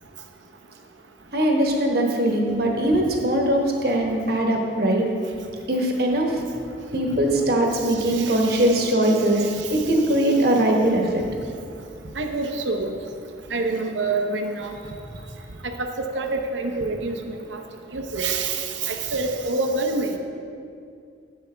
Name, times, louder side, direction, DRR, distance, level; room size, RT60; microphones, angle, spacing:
voice 1, 1.3-5.1 5.7-6.3 6.9-9.4 9.7-11.1, right 1 dB, 55° right, 1 dB, 1.1 m, -21 dB
voice 2, 8.1-8.7 9.4-9.7 12.2-12.9 13.5-14.8 15.8-17.6 17.9-20.2, right 3 dB, 85° right, 4 dB, 0.8 m, -27 dB
9.7 x 8.2 x 3.4 m, 2.4 s
head